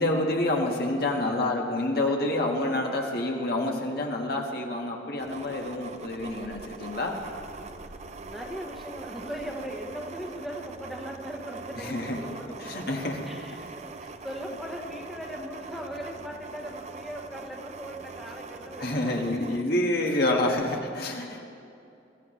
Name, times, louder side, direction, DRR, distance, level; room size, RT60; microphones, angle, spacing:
voice 1, 0.0-7.2 11.8-12.2 12.7-13.3 18.8-21.4, left 1 dB, 60° left, 1 dB, 1.6 m, -28 dB
sound 1, 5.2-19.6, right 3 dB, 40° right, 0.6 m, -42 dB
voice 2, 8.2-12.9 13.2-19.7, equal, ahead, 0 dB, 1.2 m, -39 dB
22.5 x 14.5 x 3.2 m, 2.6 s
head